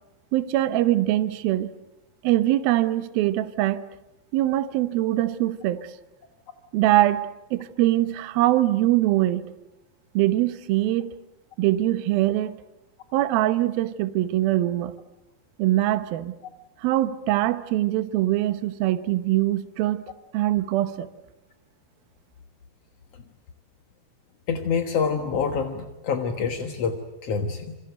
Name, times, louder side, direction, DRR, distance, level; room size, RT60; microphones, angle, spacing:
voice 1, 0.3-1.7 2.2-3.8 4.3-5.9 6.7-9.5 10.1-11.1 11.6-12.6 13.1-14.9 15.6-16.3 16.8-20.0 20.3-21.1, right 15 dB, 70° right, 2.7 m, -23 dB
voice 2, 24.5-27.8, left 5 dB, 60° left, 1.7 m, -27 dB
27.5 x 26.5 x 7.9 m
omnidirectional pair, 4.8 m